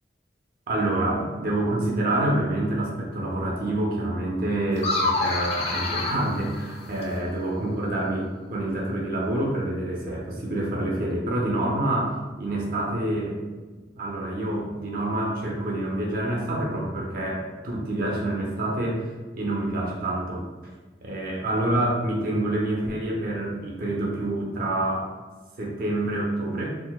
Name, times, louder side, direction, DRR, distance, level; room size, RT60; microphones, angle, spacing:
voice 1, 0.7-13.4 14.0-20.5 21.0-25.1 25.6-26.7, right 1 dB, 55° right, -2 dB, 0.5 m, -27 dB
sound 1, 4.8-7.3, left 2 dB, 35° left, 0.4 m, -27 dB
4.0 x 2.0 x 2.3 m, 1.3 s
head